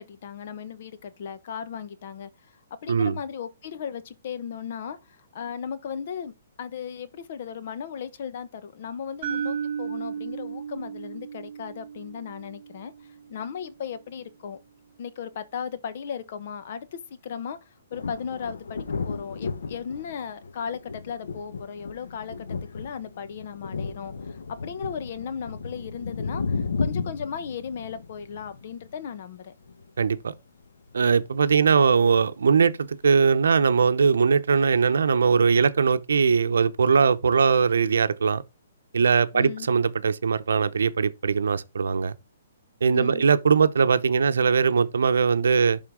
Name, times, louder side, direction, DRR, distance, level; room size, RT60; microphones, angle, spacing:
voice 1, 0.0-2.3 2.7-12.9 13.3-14.6 15.0-17.6 17.9-22.5 22.7-29.5 39.3-39.7 42.9-43.2, left 7 dB, 45° left, 1.0 m, -36 dB
voice 2, 2.9-3.2 30.0-30.3 30.9-38.4 38.9-42.1 42.8-45.8, right 5 dB, 85° right, 0.7 m, -21 dB
sound 1, 9.2-13.3, right 7 dB, 35° right, 4.4 m, -34 dB
sound 2, 17.9-29.3 29.7-30.2 30.9-31.0 31.2-31.7, left 4 dB, 85° left, 1.1 m, -34 dB
11.0 x 3.8 x 3.7 m
hypercardioid pair, 165°, 0 cm